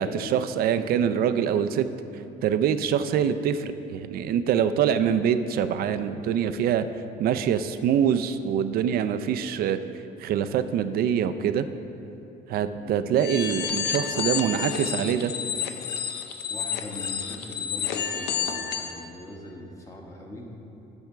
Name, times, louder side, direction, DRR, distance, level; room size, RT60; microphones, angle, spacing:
voice 1, 0.0-1.9 2.4-6.9 7.2-9.8 10.2-11.7 12.5-15.3, right 8 dB, 65° right, 10 dB, 0.4 m, -24 dB
sound 1, 13.2-19.0, left 7 dB, 75° left, 0.6 m, -30 dB
voice 2, 16.5-20.5, left 1 dB, 20° left, -1 dB, 1.3 m, -41 dB
10.0 x 3.6 x 6.6 m, 2.9 s
cardioid pair, 110°, 17 cm